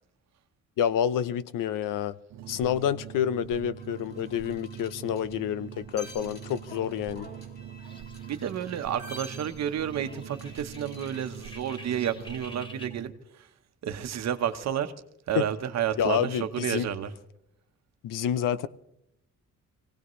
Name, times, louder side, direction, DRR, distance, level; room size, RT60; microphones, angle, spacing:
voice 1, 0.8-2.2 2.5-7.3 15.3-15.5 16.0-16.9 18.0-18.7, left 9 dB, 85° left, 0.7 m, -28 dB
sound 1, 2.3-13.1, right 9 dB, 85° right, 0.9 m, -43 dB
sound 2, 3.8-12.2, left 1 dB, 30° left, 2.6 m, -50 dB
sound 3, 7.8-12.9, left 1 dB, 15° left, 1.5 m, -50 dB
voice 2, 8.3-13.1 13.3-13.5 13.8-14.9 15.3-17.1, right 9 dB, 55° right, 1.1 m, -31 dB
25.5 x 17.5 x 3.2 m
cardioid pair, 175°, 31 cm